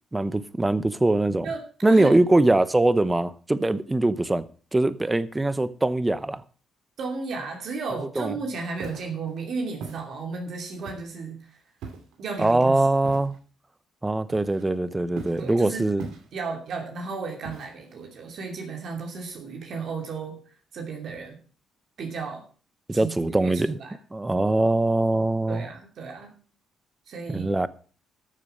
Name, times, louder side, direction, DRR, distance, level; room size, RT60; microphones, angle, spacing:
voice 1, 0.1-1.5 1.8-4.5 4.7-6.4 8.2-8.3 12.4-13.4 14.0-16.1 22.9-23.8 24.1-25.6 27.3-27.7, right 2 dB, 15° right, 0.8 m, -22 dB
voice 2, 1.4-2.1 7.0-11.6 12.2-12.8 15.4-15.9 16.3-21.4 22.0-22.4 22.9-23.9 25.5-26.3 27.1-27.6, right 4 dB, 65° right, 2.7 m, -34 dB
Walk footsteps, 8.7-9.1 9.8-10.0 10.9-11.2 11.8-12.2 13.0-13.4 14.3-14.8 15.2-15.5 16.0-16.5 17.4-17.9, right 4 dB, 85° right, 2.4 m, -40 dB
13.5 x 6.9 x 5.4 m
cardioid pair, 90°, 0 cm